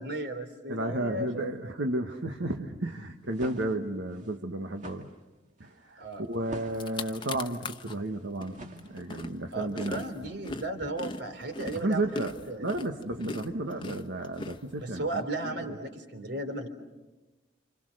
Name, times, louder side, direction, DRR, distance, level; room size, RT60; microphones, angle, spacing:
voice 1, 0.0-1.5 6.0-6.2 9.5-12.7 14.7-16.7, right 2 dB, 70° right, 7 dB, 3.5 m, -35 dB
voice 2, 0.7-5.1 5.6-10.0 11.7-15.2 15.6-15.8, right 1 dB, 85° right, 4 dB, 1.4 m, -33 dB
sound 1, 3.1-9.4, right 1 dB, 45° right, 2.2 m, -49 dB
sound 2, 6.3-6.4 6.7-8.0 8.4-15.2, left 2 dB, 25° left, 1.0 m, -40 dB
29.5 x 27.0 x 6.5 m, 1.1 s
head